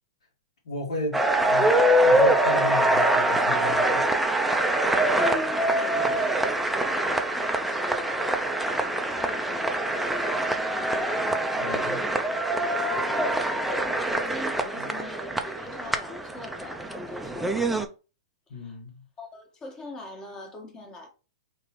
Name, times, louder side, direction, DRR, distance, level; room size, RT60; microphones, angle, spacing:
voice 1, 0.6-1.7 2.0-4.0 11.6-12.0 14.8-14.9 18.5-19.0, left 1 dB, 85° left, 1.6 m, -34 dB
sound 1, 1.1-17.9, right 1 dB, 5° right, 0.4 m, -24 dB
voice 2, 5.1-11.4 11.7-12.0 12.5-17.7 18.5-18.8 19.2-21.1, left 2 dB, 20° left, 1.2 m, -41 dB
4.4 x 3.1 x 2.9 m
hypercardioid pair, 140°, 3 cm